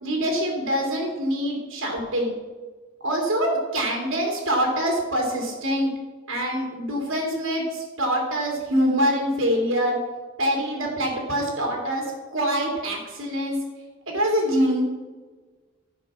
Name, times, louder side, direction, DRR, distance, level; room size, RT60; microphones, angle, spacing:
voice 1, 0.0-2.3 3.0-5.9 6.3-10.0 10.4-13.6 14.1-14.8, equal, 75° right, -1 dB, 2.9 m, -25 dB
12.5 x 5.5 x 6.1 m, 1.3 s
head